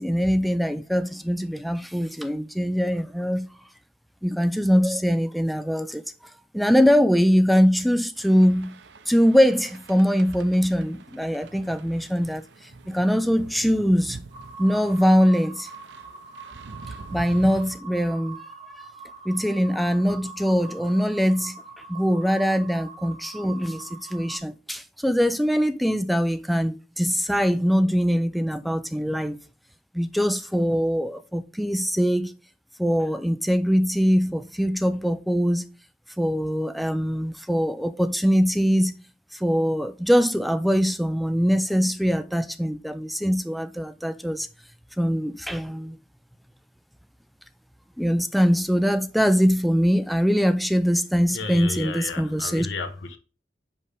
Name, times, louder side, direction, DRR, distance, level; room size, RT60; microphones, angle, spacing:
voice 1, 0.0-3.5 4.2-6.0 6.5-8.8 9.1-12.4 12.9-14.2 14.6-15.7 17.1-18.4 19.3-21.6 21.9-29.4 29.9-32.3 32.8-35.6 36.2-39.0 39.3-44.5 45.0-46.0 48.0-52.7, equal, ahead, 0.3 m, -22 dB
sound 1, 8.2-17.8, right 3 dB, 70° right, 0.6 m, -44 dB
sound 2, 14.3-24.4, right 4 dB, 40° right, 1.9 m, -43 dB
voice 2, 51.3-53.2, left 3 dB, 85° left, 0.9 m, -33 dB
5.4 x 5.3 x 3.4 m
head